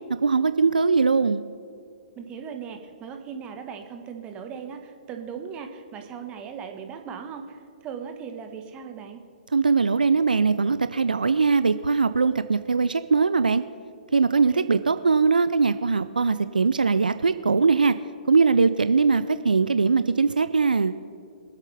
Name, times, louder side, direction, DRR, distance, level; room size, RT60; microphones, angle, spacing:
voice 1, 0.1-1.4 9.5-13.6 14.1-17.9 18.3-20.9, right 4 dB, 80° right, 12 dB, 0.4 m, -21 dB
voice 2, 2.2-7.4 7.8-9.2 14.5-14.7, right 7 dB, 25° right, 5 dB, 1.4 m, -38 dB
24.0 x 8.2 x 3.4 m, 2.4 s
figure-of-eight pair, 120°, 5 cm